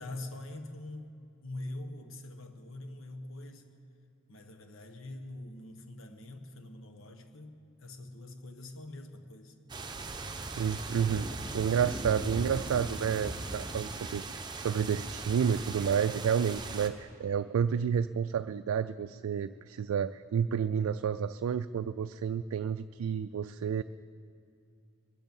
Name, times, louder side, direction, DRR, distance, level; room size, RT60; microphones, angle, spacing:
voice 1, 0.0-3.7 4.3-9.5, left 2 dB, 75° left, 7 dB, 1.2 m, -44 dB
sound 1, 9.7-16.9, right 3 dB, 20° right, 0.8 m, -39 dB
voice 2, 10.2-23.8, right 7 dB, 90° right, 11 dB, 0.3 m, -30 dB
22.0 x 8.1 x 7.1 m, 2.5 s
head